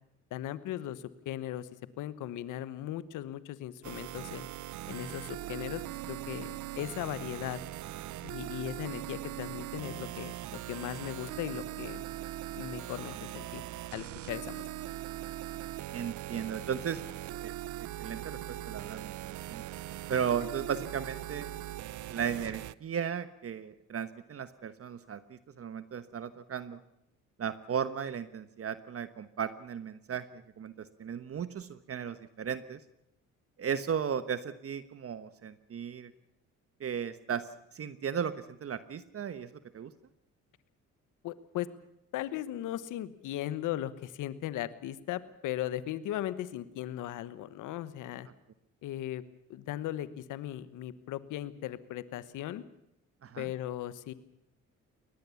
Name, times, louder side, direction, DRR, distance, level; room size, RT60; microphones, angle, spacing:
voice 1, 0.3-1.7 2.0-4.5 4.9-5.8 6.1-7.6 8.2-10.3 10.7-12.0 12.6-13.6 13.9-14.7 41.2-41.7 42.1-48.3 48.8-49.2 49.5-52.6 53.4-54.1, left 13 dB, 90° left, 15 dB, 1.2 m, -37 dB
sound 1, 3.8-22.7, right 14 dB, 75° right, 0.8 m, -40 dB
voice 2, 15.9-17.0 17.4-19.6 20.1-21.5 22.1-26.8 27.4-32.8 33.6-36.1 36.8-39.9 53.2-53.5, right 7 dB, 50° right, 13 dB, 1.2 m, -36 dB
22.5 x 19.5 x 7.1 m, 0.81 s
cardioid pair, 90°, 30 cm